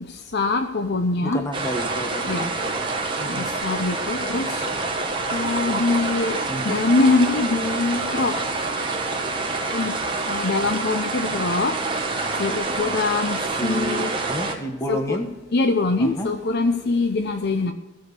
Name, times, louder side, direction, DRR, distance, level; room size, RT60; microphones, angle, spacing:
voice 1, 0.3-1.4 2.2-2.5 3.3-4.7 5.3-8.4 9.7-10.0 10.2-11.8 12.4-14.1 14.9-15.2 15.5-17.7, left 3 dB, 55° left, 7 dB, 0.7 m, -23 dB
voice 2, 1.2-2.5 3.2-3.5 6.5-6.8 13.6-15.3 16.0-16.3, equal, 15° left, 5 dB, 1.3 m, -30 dB
sound 1, 1.5-14.6, right 3 dB, 25° right, 1.3 m, -27 dB
14.5 x 5.1 x 6.7 m, 1.1 s
head